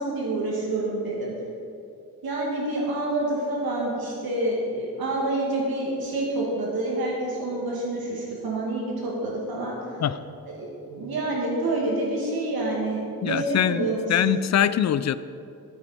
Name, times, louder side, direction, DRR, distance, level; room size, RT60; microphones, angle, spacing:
voice 1, 0.0-1.3 2.2-9.7 10.6-13.0 13.2-14.2, right 2 dB, 80° right, -4 dB, 2.2 m, -27 dB
voice 2, 13.2-15.2, left 10 dB, 50° left, 15 dB, 0.4 m, -23 dB
14.5 x 8.8 x 4.4 m, 2.7 s
wide cardioid pair, 135°, 36 cm